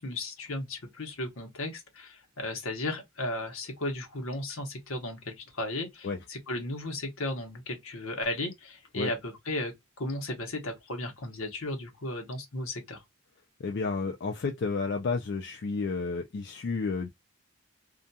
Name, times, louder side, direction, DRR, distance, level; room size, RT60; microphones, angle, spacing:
voice 1, 0.0-13.0, left 1 dB, 75° left, 0.9 m, -35 dB
voice 2, 13.6-17.1, left 4 dB, 50° left, 0.4 m, -31 dB
2.4 x 2.3 x 2.6 m
head